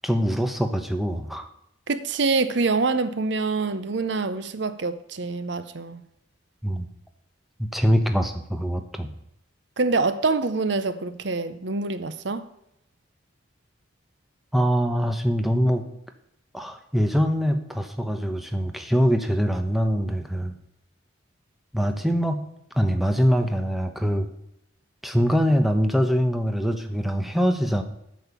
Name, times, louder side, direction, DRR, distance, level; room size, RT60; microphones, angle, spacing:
voice 1, 0.0-1.5 6.6-6.9 7.6-9.1 14.5-15.8 16.5-20.5 21.7-22.4 22.7-24.3 25.0-27.8, equal, ahead, 0.9 m, -23 dB
voice 2, 1.9-6.0 9.8-12.4, right 3 dB, 60° right, 0.7 m, -25 dB
9.1 x 6.5 x 8.2 m
head